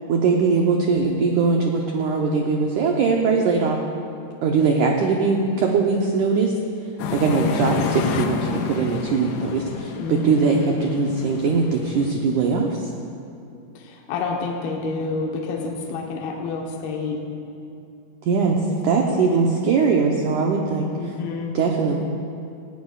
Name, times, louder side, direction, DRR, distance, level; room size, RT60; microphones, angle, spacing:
voice 1, 0.1-3.8 4.4-6.5 7.1-12.9 18.2-20.9 21.5-22.0, right 4 dB, 85° right, 0 dB, 1.8 m, -21 dB
sound 1, 7.0-12.1, left 6 dB, 90° left, 2.8 m, -29 dB
voice 2, 10.0-10.8 13.7-17.2 19.0-19.3 20.9-21.6, left 4 dB, 75° left, 0 dB, 2.9 m, -29 dB
19.0 x 17.0 x 2.4 m, 2.5 s
omnidirectional pair, 4.7 m